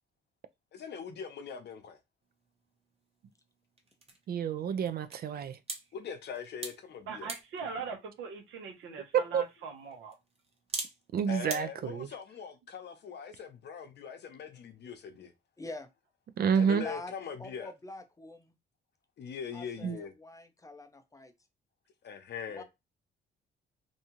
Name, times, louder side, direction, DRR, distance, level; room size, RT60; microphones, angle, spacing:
voice 1, 0.7-2.0 5.9-7.3 11.3-15.3 16.6-17.7 19.2-20.1 22.0-22.6, left 7 dB, 60° left, 0.7 m, -41 dB
sound 1, 2.2-11.6, right 3 dB, 30° right, 0.9 m, -46 dB
voice 2, 4.3-5.6 9.1-9.4 11.1-12.1 16.4-16.8 19.8-20.0, right 7 dB, 50° right, 0.4 m, -29 dB
voice 3, 7.1-10.2 16.6-16.9, right 5 dB, 80° right, 0.9 m, -41 dB
voice 4, 15.6-15.9 16.8-17.1 17.4-18.6 19.5-21.3 22.5-22.6, left 2 dB, 15° left, 0.5 m, -45 dB
2.7 x 2.3 x 2.9 m
cardioid pair, 90°, 20 cm